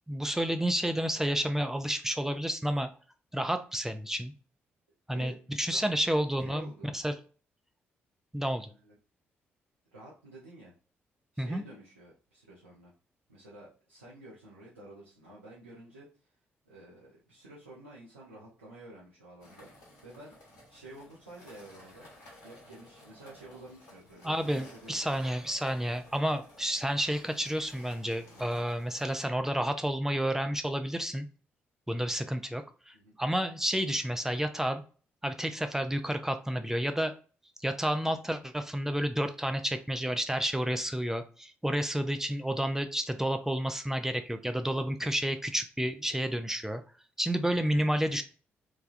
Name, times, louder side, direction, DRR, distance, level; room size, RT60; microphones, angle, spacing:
voice 1, 0.1-2.9 3.3-4.3 5.1-5.3 5.6-7.2 8.3-8.7 11.4-11.6 24.2-31.3 31.9-34.8 35.2-37.1 37.6-46.8 47.2-48.2, equal, 5° right, 7 dB, 0.3 m, -30 dB
voice 2, 6.4-6.9 8.7-8.9 9.9-10.7 11.3-12.9 13.3-16.3 16.7-19.7 20.0-20.4 20.7-22.1 22.4-25.2 28.3-28.5 32.9-33.1, right 1 dB, 85° right, -8 dB, 0.6 m, -50 dB
sound 1, 19.4-29.2, left 1 dB, 65° left, 1.0 m, -55 dB
3.2 x 2.3 x 2.5 m, 0.38 s
figure-of-eight pair, 40°, 6 cm